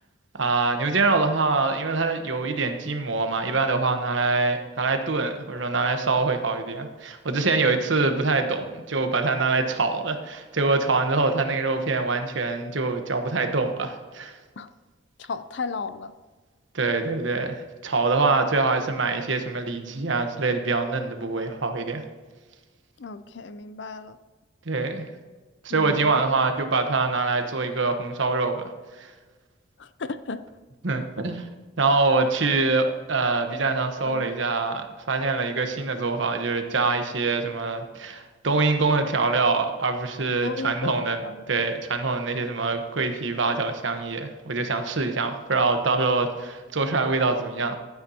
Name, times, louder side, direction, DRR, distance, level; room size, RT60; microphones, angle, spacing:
voice 1, 0.4-14.3 16.7-22.0 24.7-25.1 25.6-28.7 29.0-29.1 30.8-31.4 31.8-41.2 41.5-47.8, right 3 dB, 80° right, 6 dB, 1.1 m, -24 dB
voice 2, 15.2-16.1 23.0-24.2 25.7-26.2 29.8-30.4 34.0-34.3 40.4-41.5, left 4 dB, 70° left, 12 dB, 0.6 m, -34 dB
12.0 x 9.5 x 2.9 m, 1.4 s
head